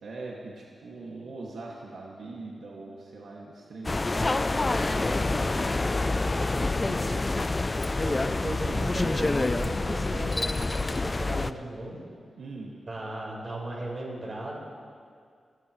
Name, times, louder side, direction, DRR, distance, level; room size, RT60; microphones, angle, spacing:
voice 1, 0.0-7.3 12.4-12.7, right 3 dB, 75° right, -4 dB, 2.0 m, -42 dB
sound 1, 3.8-11.5, left 2 dB, 20° left, 0.4 m, -27 dB
voice 2, 8.0-12.0 12.9-14.6, right 1 dB, 35° right, -3 dB, 4.2 m, -36 dB
26.0 x 16.5 x 3.2 m, 2.2 s
wide cardioid pair, 155°, 0 cm